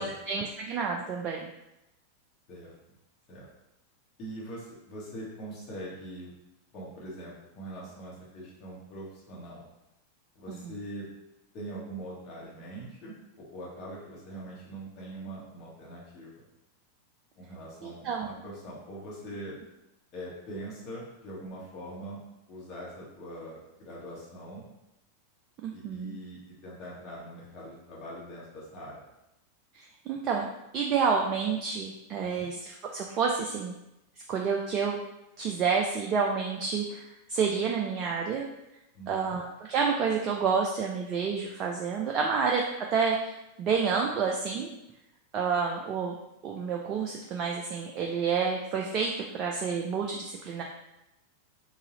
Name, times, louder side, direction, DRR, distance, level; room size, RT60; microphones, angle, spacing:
voice 1, 0.3-1.4 10.5-10.8 17.8-18.5 25.6-26.2 29.7-30.5 30.7-33.7 34.3-35.0 35.4-38.5 39.1-43.3 43.6-44.7 45.3-46.1 46.4-50.6, right 5 dB, 35° right, 0 dB, 0.4 m, -29 dB
voice 2, 4.2-6.3 6.7-9.6 10.3-11.1 11.5-16.4 17.4-19.6 20.1-22.2 22.5-24.6 25.7-29.0 32.2-32.5 38.9-39.4, right 1 dB, 35° left, -6 dB, 1.3 m, -42 dB
4.0 x 2.7 x 3.8 m, 0.89 s
figure-of-eight pair, 90°, 0 cm